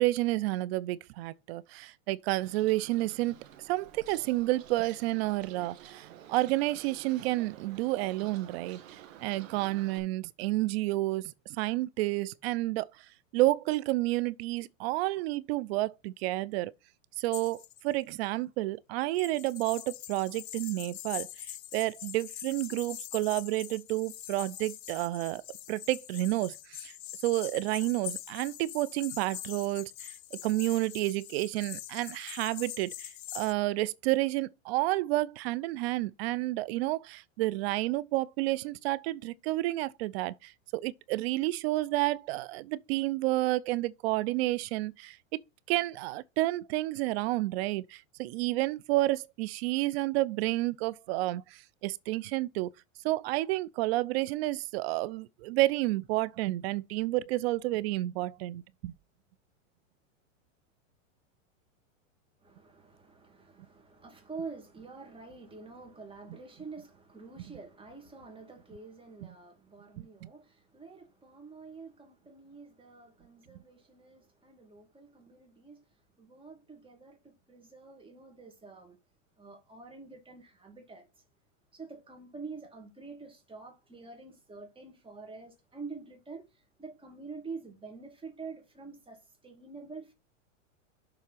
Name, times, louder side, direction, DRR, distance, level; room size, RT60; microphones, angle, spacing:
voice 1, 0.0-3.4 3.7-13.0 13.3-16.7 17.2-25.4 25.7-26.9 27.2-45.2 45.7-52.7 53.0-58.9 70.0-70.3, right 18 dB, 50° right, 0.6 m, -30 dB
Bird, 2.4-10.0, right 10 dB, 75° right, 1.6 m, -51 dB
sound 1, 17.3-18.1 19.1-33.5, left 13 dB, 90° left, 0.6 m, -43 dB
voice 2, 62.4-75.9 76.2-79.0 79.4-81.1 81.7-90.1, right 4 dB, 15° right, 2.4 m, -47 dB
6.8 x 4.0 x 5.8 m
hypercardioid pair, 120°, 40 cm